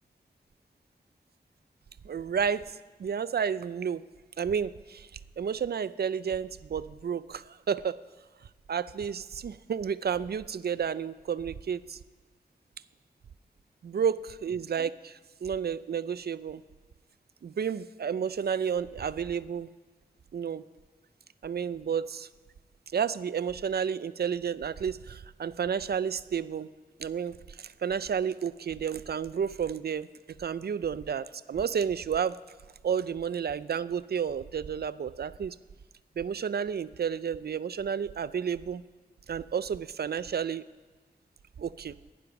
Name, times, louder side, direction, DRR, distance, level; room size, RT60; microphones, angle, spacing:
voice 1, 2.1-2.6 3.0-4.0 4.4-5.1 5.4-8.0 8.7-12.0 13.8-16.6 17.4-19.7 20.3-20.6 21.4-22.3 22.9-26.7 27.0-27.3 27.8-30.1 30.4-32.4 32.8-35.6 36.2-38.8 39.3-40.6 41.6-41.9, right 7 dB, 75° right, 16 dB, 0.4 m, -31 dB
15.0 x 11.0 x 5.9 m, 1.3 s
wide cardioid pair, 85°, 17 cm